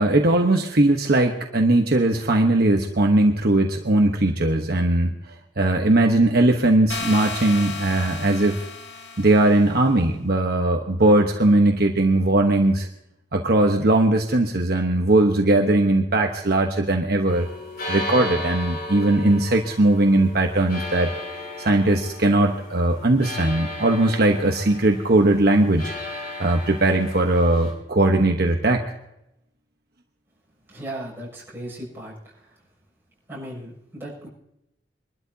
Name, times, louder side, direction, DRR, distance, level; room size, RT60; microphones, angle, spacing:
voice 1, 0.0-5.1 5.6-8.6 9.2-12.9 13.3-17.5 17.9-21.1 21.6-25.9 26.4-28.8, right 2 dB, 60° right, 2 dB, 1.1 m, -19 dB
sound 1, 6.9-9.8, left 4 dB, 70° left, 1.9 m, -34 dB
sound 2, 17.3-27.7, left 1 dB, 55° left, 5.9 m, -35 dB
voice 2, 30.7-32.6 33.3-34.3, right 1 dB, 10° right, -5 dB, 6.9 m, -37 dB
24.5 x 12.5 x 2.8 m, 0.84 s
head